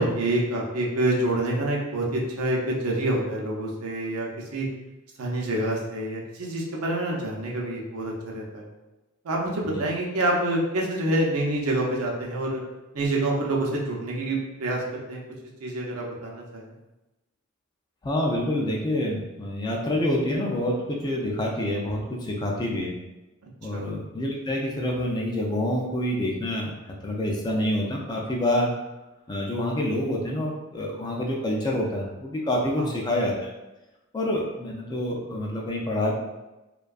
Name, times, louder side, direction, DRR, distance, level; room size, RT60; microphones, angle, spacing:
voice 1, 0.0-4.7 5.2-8.7 9.2-12.6 12.9-15.2 15.6-16.7 23.7-23.9 32.8-32.9, right 1 dB, 80° right, -2 dB, 0.6 m, -27 dB
voice 2, 18.0-22.9 23.6-26.7 27.0-28.7 29.3-33.5 34.1-36.1, left 1 dB, 20° left, -1 dB, 0.3 m, -27 dB
2.6 x 2.2 x 2.3 m, 1.0 s
head